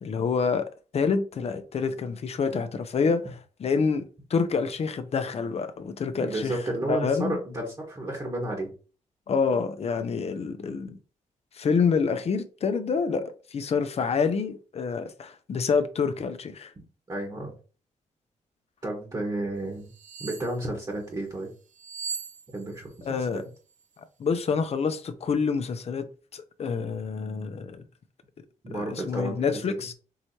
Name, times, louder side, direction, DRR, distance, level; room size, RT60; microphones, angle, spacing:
voice 1, 0.0-4.0 4.3-6.6 6.9-7.4 9.3-11.0 11.5-16.7 23.1-23.5 24.2-26.1 26.3-27.8 28.7-29.9, left 5 dB, 50° left, 0.6 m, -27 dB
voice 2, 6.2-8.7 17.1-17.5 18.8-19.9 20.2-21.5 22.5-23.5 28.6-29.6, right 1 dB, 30° right, 1.4 m, -32 dB
sound 1, 19.9-20.6 21.7-23.0 23.2-23.4, right 6 dB, 70° right, 0.6 m, -38 dB
4.7 x 3.1 x 2.7 m
cardioid pair, 90°, 13 cm